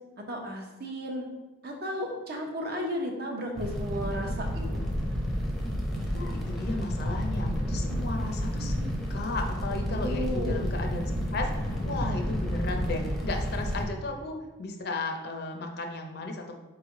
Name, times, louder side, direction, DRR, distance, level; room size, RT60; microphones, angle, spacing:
voice 1, 0.3-1.2 1.6-4.8 9.8-10.8, equal, 50° right, 2 dB, 0.7 m, -34 dB
Fire, 3.6-13.9, equal, ahead, 0.6 m, -30 dB
voice 2, 6.1-16.5, left 2 dB, 55° left, 3 dB, 0.5 m, -35 dB
4.6 x 3.2 x 3.6 m, 1.1 s
head